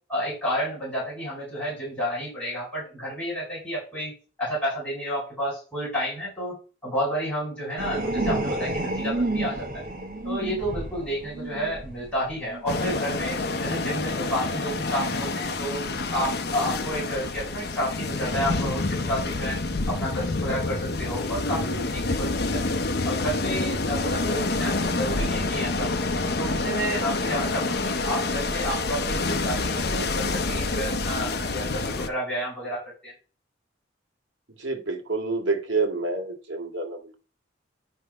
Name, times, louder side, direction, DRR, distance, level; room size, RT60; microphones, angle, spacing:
voice 1, 0.1-4.1 4.4-6.6 6.8-9.8 10.2-15.8 16.1-19.6 19.9-22.6 23.0-26.0 26.4-33.1, equal, 5° left, -6 dB, 4.7 m, -31 dB
sound 1, 7.8-13.0 13.6-13.9, right 2 dB, 45° right, 1.1 m, -30 dB
sound 2, 12.7-32.1, left 3 dB, 55° left, 0.8 m, -27 dB
voice 2, 34.6-37.2, right 3 dB, 85° right, 2 dB, 2.0 m, -28 dB
10.5 x 3.4 x 5.3 m, 0.35 s
head